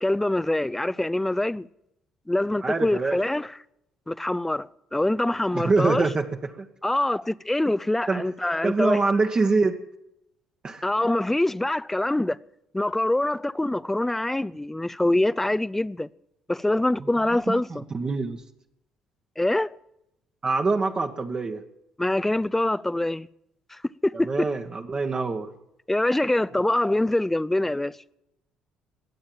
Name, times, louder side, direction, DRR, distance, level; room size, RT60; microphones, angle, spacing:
voice 1, 0.0-1.7 2.3-3.5 4.1-6.1 6.8-9.0 10.8-12.4 12.7-16.1 16.5-17.9 19.4-19.7 22.0-23.3 23.7-24.3 25.9-28.0, left 1 dB, 10° left, 0.5 m, -24 dB
voice 2, 2.6-3.2 5.5-6.7 8.1-8.2 8.6-9.8 10.6-10.8 17.0-17.1 17.5-18.4 20.4-21.6 24.1-25.5, right 3 dB, 35° right, 1.3 m, -25 dB
21.5 x 8.8 x 7.4 m
figure-of-eight pair, 50°, 3 cm